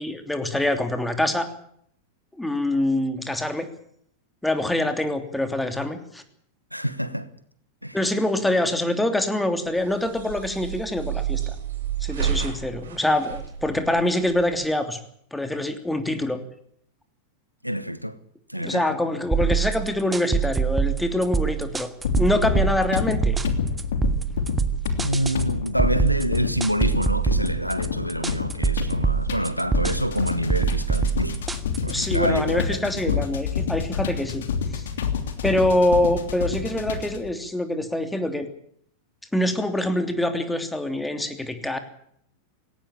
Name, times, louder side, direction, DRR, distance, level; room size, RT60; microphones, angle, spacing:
voice 1, 0.0-1.5 2.4-3.7 4.4-6.2 7.9-11.6 12.0-15.0 15.3-16.4 18.6-21.9 22.2-23.4 31.9-34.4 34.7-34.9 35.4-38.5 39.3-41.8, left 1 dB, 5° left, 3.1 m, -25 dB
voice 2, 6.7-7.3 7.8-8.0 17.6-18.2 18.5-18.9 25.0-31.4 31.8-33.3, equal, 90° right, 1.3 m, -27 dB
sound 1, 9.7-14.6, right 9 dB, 65° right, 6.0 m, -31 dB
sound 2, 19.3-32.2, right 6 dB, 10° right, 1.6 m, -25 dB
sound 3, 22.0-37.3, left 6 dB, 60° left, 2.9 m, -28 dB
18.5 x 18.0 x 8.9 m
figure-of-eight pair, 90°, 0 cm